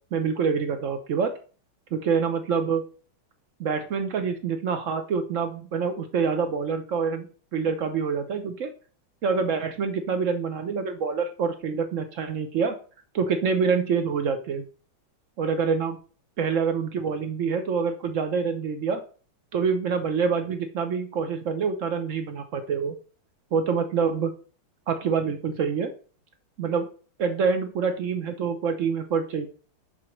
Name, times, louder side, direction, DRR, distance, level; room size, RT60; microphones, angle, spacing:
voice 1, 0.1-1.3 1.9-2.8 3.6-7.3 7.5-8.7 9.2-12.8 13.1-14.6 15.4-16.0 16.4-19.0 19.5-22.9 23.5-24.3 24.9-25.9 26.6-26.9 27.2-29.5, right 5 dB, 65° right, 7 dB, 0.7 m, -26 dB
7.8 x 6.0 x 3.1 m, 0.39 s
omnidirectional pair, 2.3 m